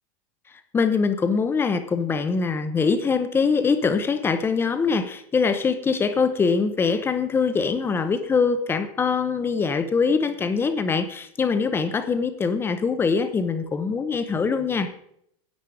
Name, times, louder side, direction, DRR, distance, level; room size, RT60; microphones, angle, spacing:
voice 1, 0.7-14.9, left 5 dB, 15° left, 10 dB, 0.7 m, -23 dB
10.5 x 8.4 x 4.8 m, 0.70 s
supercardioid pair, 160°, 18 cm